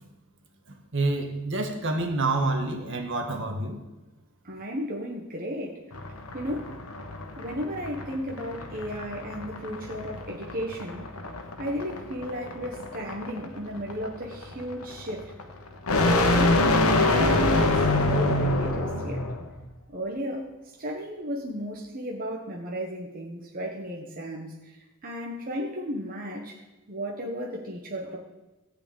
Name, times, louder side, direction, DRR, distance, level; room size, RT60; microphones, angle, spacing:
voice 1, 0.9-3.8, right 2 dB, 60° right, 3 dB, 1.7 m, -27 dB
voice 2, 4.4-5.8 6.3-6.8 7.4-11.1 11.6-15.3 15.9-19.2 19.9-20.5 20.8-26.6 26.9-28.2, equal, 40° right, -1 dB, 1.3 m, -34 dB
sound 1, 5.9-19.4, left 2 dB, 85° left, 1.2 m, -26 dB
14.5 x 5.0 x 8.6 m, 1.1 s
head